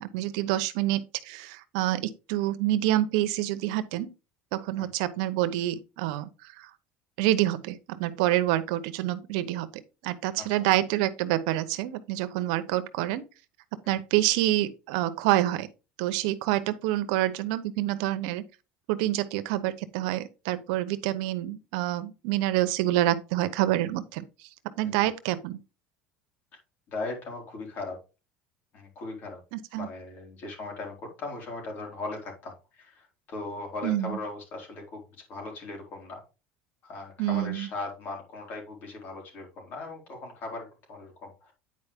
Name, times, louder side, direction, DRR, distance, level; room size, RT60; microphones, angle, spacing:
voice 1, 0.0-4.1 4.5-6.7 7.2-13.2 13.9-15.7 16.0-18.4 18.9-24.5 24.8-25.6 29.5-29.9 33.8-34.2 37.2-37.7, right 14 dB, 80° right, 0.8 m, -27 dB
voice 2, 26.9-28.0 28.7-29.4 29.8-35.0 35.3-36.2 36.8-41.5, left 3 dB, 50° left, 3.9 m, -38 dB
9.5 x 4.8 x 3.5 m
supercardioid pair, 120°, 4 cm